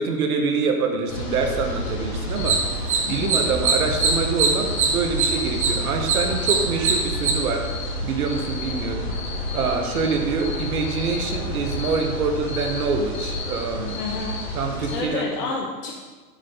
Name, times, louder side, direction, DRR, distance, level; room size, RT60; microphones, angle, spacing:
voice 1, 0.0-2.6 3.1-7.7 8.0-9.1 9.5-14.0 14.5-15.3, right 5 dB, 65° right, 4 dB, 1.3 m, -25 dB
sound 1, 1.1-15.0, left 2 dB, 35° left, 2.0 m, -30 dB
sound 2, 2.3-7.3, right 5 dB, 25° right, 0.4 m, -23 dB
voice 2, 3.0-3.4 13.9-14.4 14.9-15.9, left 4 dB, 75° left, -2 dB, 1.1 m, -30 dB
7.4 x 3.7 x 5.6 m, 1.4 s
hypercardioid pair, 130°, 47 cm